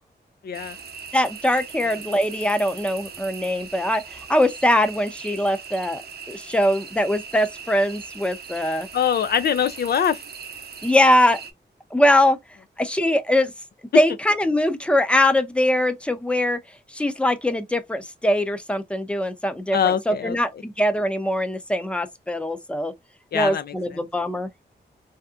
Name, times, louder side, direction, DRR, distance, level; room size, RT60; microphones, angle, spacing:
voice 1, 0.4-0.8 8.9-10.2 19.7-20.4 23.3-23.7, left 8 dB, 65° left, 0.4 m, -23 dB
sound 1, 0.5-11.5, right 6 dB, 60° right, 0.7 m, -39 dB
voice 2, 1.1-6.0 6.3-8.9 10.8-11.4 11.9-12.4 12.8-13.5 13.9-16.6 16.9-22.9 23.3-24.5, left 1 dB, 5° left, 0.6 m, -22 dB
3.3 x 2.8 x 2.4 m
wide cardioid pair, 120°, 18 cm